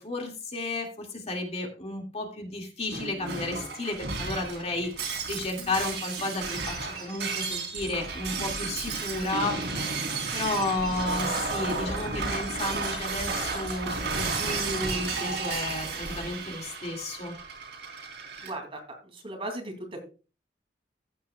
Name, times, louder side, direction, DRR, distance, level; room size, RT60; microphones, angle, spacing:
voice 1, 0.0-17.4, left 2 dB, 40° left, 2 dB, 2.2 m, -33 dB
Shatter, 2.9-18.5, right 4 dB, 75° right, 3.8 m, -33 dB
voice 2, 18.4-20.0, right 1 dB, 35° right, 3 dB, 2.7 m, -37 dB
15.0 x 8.4 x 2.3 m, 0.33 s
head